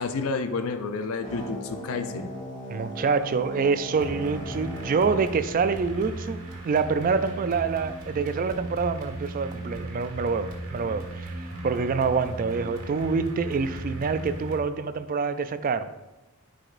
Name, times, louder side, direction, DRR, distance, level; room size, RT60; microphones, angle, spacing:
voice 1, 0.0-2.3, left 4 dB, 65° left, 8 dB, 0.5 m, -30 dB
sound 1, 1.2-6.2, right 1 dB, 35° left, 1.8 m, -39 dB
voice 2, 2.7-15.9, right 5 dB, 40° right, 12 dB, 0.3 m, -26 dB
sound 2, 3.9-14.6, right 1 dB, 65° right, 1.6 m, -37 dB
9.7 x 5.0 x 2.5 m, 1.1 s
head